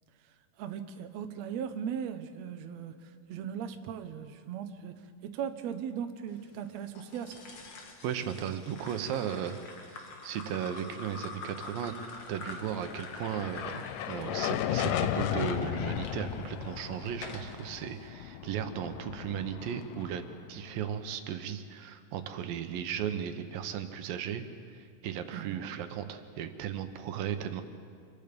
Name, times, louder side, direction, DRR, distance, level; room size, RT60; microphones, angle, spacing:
voice 1, 0.6-7.4 25.3-25.7, right 8 dB, 65° right, 7 dB, 1.8 m, -38 dB
sound 1, 7.0-16.1 16.7-17.6, left 4 dB, 50° left, 2.7 m, -46 dB
voice 2, 8.0-9.6 9.8-11.9 12.3-20.2 20.5-24.4 24.7-27.6, right 9 dB, 85° right, 8 dB, 2.8 m, -36 dB
sound 2, 12.5-20.9, left 11 dB, 80° left, 2.2 m, -35 dB
27.0 x 22.5 x 5.2 m, 2.3 s
omnidirectional pair, 4.0 m